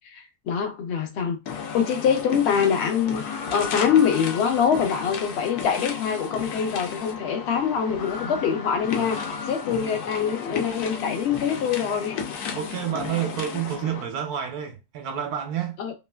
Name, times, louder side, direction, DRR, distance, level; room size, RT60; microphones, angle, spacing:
voice 1, 0.1-1.4 1.7-9.2 9.5-12.2 15.8-15.9, left 7 dB, 55° left, 0.8 m, -24 dB
sound 1, 1.5-14.0, left 6 dB, 80° left, 1.2 m, -33 dB
voice 2, 12.5-15.8, right 9 dB, 75° right, 1.2 m, -29 dB
3.0 x 2.4 x 2.3 m
omnidirectional pair, 1.7 m